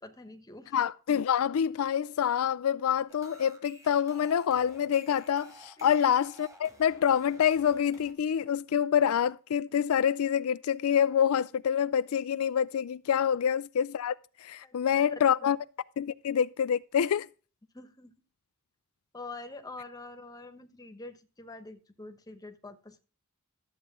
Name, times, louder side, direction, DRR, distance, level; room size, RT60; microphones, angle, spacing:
voice 1, 0.0-0.7 5.8-5.9 13.3-13.4 14.6-15.1 15.4-15.5 17.7-18.2 19.1-23.0, left 3 dB, 20° left, 1.1 m, -46 dB
voice 2, 0.7-15.6 16.0-17.3, left 8 dB, 80° left, 0.4 m, -27 dB
sound 1, 3.1-8.1, right 1 dB, 15° right, 2.1 m, -54 dB
13.0 x 7.9 x 3.6 m
head